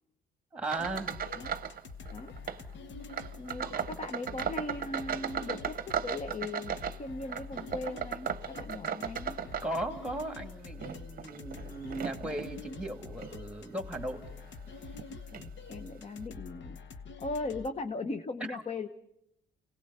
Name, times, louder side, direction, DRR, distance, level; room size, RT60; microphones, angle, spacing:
voice 1, 0.5-1.2 3.4-3.9 9.6-14.3 18.5-18.6, right 1 dB, 5° right, 5 dB, 2.3 m, -37 dB
sound 1, 0.6-1.8 2.1-2.6 3.1-10.2 10.7-12.5 13.1-13.4 13.9-14.1 14.9-15.0 15.3-15.5, right 8 dB, 45° right, 0.8 m, -37 dB
sound 2, 0.8-17.7, left 4 dB, 65° left, 1.1 m, -46 dB
voice 2, 3.3-9.4 15.1-16.8 17.2-18.9, left 3 dB, 35° left, 9 dB, 0.9 m, -39 dB
29.0 x 17.5 x 5.6 m, 0.80 s
cardioid pair, 90°, 20 cm